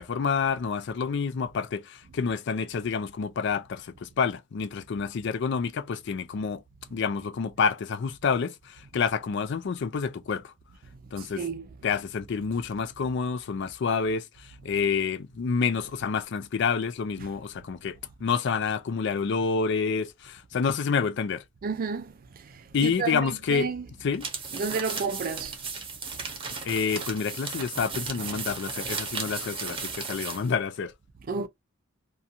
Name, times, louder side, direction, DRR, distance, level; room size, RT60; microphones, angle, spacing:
voice 1, 0.0-6.6 6.9-10.5 11.1-11.4 11.8-14.3 14.6-18.0 18.2-21.4 22.7-23.7 24.0-24.3 26.6-30.9, left 5 dB, 60° left, 0.4 m, -28 dB
voice 2, 11.2-11.7 21.6-23.8 24.5-25.5 28.3-28.5 31.3-31.5, right 5 dB, 45° right, 0.4 m, -32 dB
sound 1, 24.1-30.5, right 4 dB, 25° right, 0.8 m, -35 dB
2.5 x 2.3 x 2.7 m
head